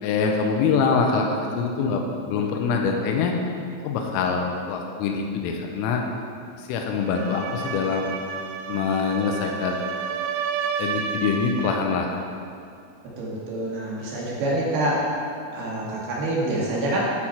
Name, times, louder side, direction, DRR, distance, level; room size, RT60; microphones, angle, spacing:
voice 1, 0.0-3.4 3.8-6.0 6.5-8.1 8.7-9.8 10.8-12.2, left 5 dB, 90° left, 2 dB, 3.3 m, -24 dB
sound 1, 7.0-11.9, right 6 dB, 85° right, 3.1 m, -31 dB
voice 2, 13.2-15.0 15.5-17.0, right 1 dB, 60° right, -5 dB, 3.2 m, -26 dB
10.5 x 8.5 x 4.4 m, 2.4 s
omnidirectional pair, 5.9 m